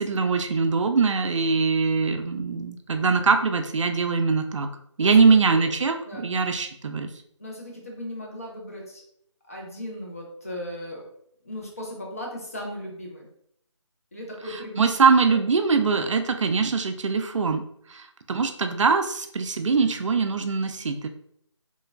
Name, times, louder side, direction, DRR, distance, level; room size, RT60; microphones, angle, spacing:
voice 1, 0.0-4.7 5.0-7.1 14.8-17.6 17.9-21.1, right 4 dB, 70° right, 6 dB, 0.4 m, -22 dB
voice 2, 5.0-5.7 6.0-6.3 7.4-9.0 9.5-11.1 11.4-13.3 14.1-15.0 15.3-15.4, left 1 dB, 30° left, -1 dB, 0.5 m, -37 dB
3.1 x 2.2 x 2.2 m, 0.69 s
figure-of-eight pair, 170°, 16 cm